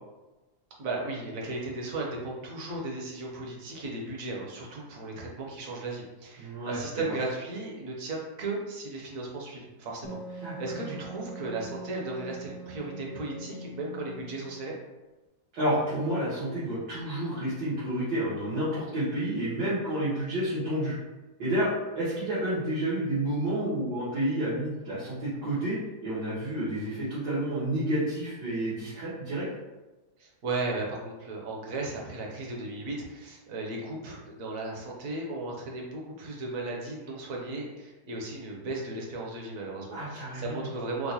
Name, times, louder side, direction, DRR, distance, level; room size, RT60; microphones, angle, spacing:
voice 1, 0.8-14.8 30.2-41.1, right 2 dB, 60° right, -2 dB, 1.0 m, -36 dB
voice 2, 6.4-6.8 10.4-10.9 15.5-20.9 21.4-29.5 39.9-40.7, right 1 dB, 85° right, -12 dB, 1.9 m, -30 dB
Wind instrument woodwind instrument, 10.0-14.5, right 2 dB, 75° left, 1.1 m, -42 dB
4.6 x 2.1 x 2.7 m, 1.1 s
omnidirectional pair, 1.8 m